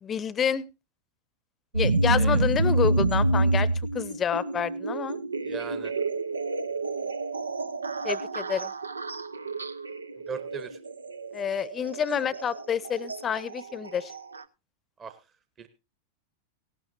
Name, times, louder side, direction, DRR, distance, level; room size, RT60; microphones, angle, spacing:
voice 1, 0.0-0.7 1.7-3.7 3.9-5.2 8.0-8.7 11.3-14.1, left 8 dB, 25° left, 21 dB, 0.8 m, -28 dB
sound 1, 1.7-14.4, right 2 dB, 75° right, 0.6 m, -28 dB
voice 2, 5.4-5.9 10.2-10.8 15.0-15.2 15.6-15.7, right 6 dB, 25° right, 10 dB, 1.1 m, -38 dB
17.0 x 12.5 x 2.7 m, 0.26 s
figure-of-eight pair, 90°, 0 cm